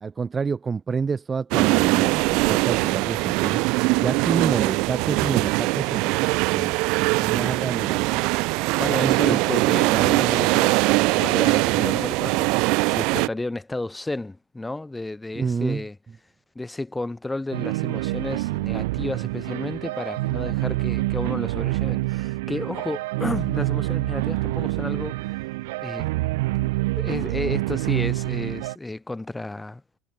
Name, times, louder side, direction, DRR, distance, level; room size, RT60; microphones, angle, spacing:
voice 1, 0.0-6.8 7.1-8.3 9.0-9.4 15.3-15.8, right 5 dB, 15° right, 1.2 m, -29 dB
sound 1, 1.5-13.3, right 26 dB, 50° right, 1.2 m, -21 dB
voice 2, 8.8-16.0 16.6-25.2 25.8-26.1 26.6-30.0, left 2 dB, 5° left, 5.2 m, -32 dB
sound 2, 17.5-28.8, right 21 dB, 80° right, 1.3 m, -27 dB
cardioid pair, 170°, 0 cm